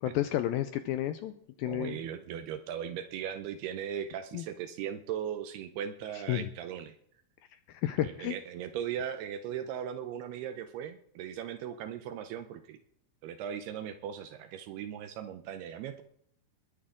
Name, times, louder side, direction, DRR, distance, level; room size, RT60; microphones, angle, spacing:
voice 1, 0.0-1.3 1.6-2.0 4.3-4.4 6.3-6.5 7.7-8.3, left 13 dB, 80° left, 10 dB, 2.2 m, -31 dB
voice 2, 1.7-7.0 8.0-12.8 13.2-16.0, right 9 dB, 80° right, 8 dB, 2.7 m, -38 dB
21.0 x 10.5 x 3.8 m, 0.68 s
omnidirectional pair, 4.7 m